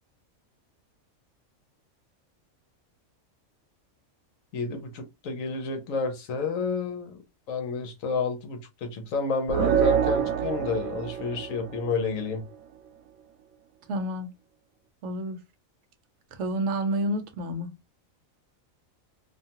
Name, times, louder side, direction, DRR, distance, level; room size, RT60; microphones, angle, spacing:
voice 1, 4.5-7.2 7.5-12.4, left 4 dB, 75° left, 1.1 m, -30 dB
sound 1, 9.5-12.2, right 8 dB, 90° right, 1.0 m, -26 dB
voice 2, 13.9-14.3 15.0-15.4 16.4-17.7, right 1 dB, 65° right, 0.8 m, -29 dB
2.6 x 2.3 x 2.7 m
omnidirectional pair, 1.4 m